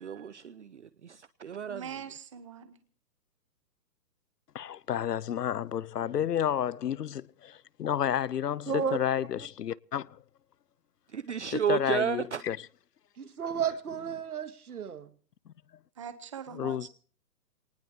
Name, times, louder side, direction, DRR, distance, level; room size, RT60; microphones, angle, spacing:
voice 1, 0.0-2.0 11.1-12.4, right 8 dB, 45° right, 0.7 m, -32 dB
voice 2, 1.7-2.8 16.0-16.9, right 7 dB, 20° right, 1.0 m, -42 dB
voice 3, 4.5-10.2 11.7-12.6 15.5-15.6 16.5-16.9, left 9 dB, 70° left, 0.8 m, -31 dB
voice 4, 8.7-9.0 9.4-9.5 13.2-15.1, right 7 dB, 60° right, 2.1 m, -33 dB
24.5 x 19.5 x 2.9 m
hypercardioid pair, 170°, 49 cm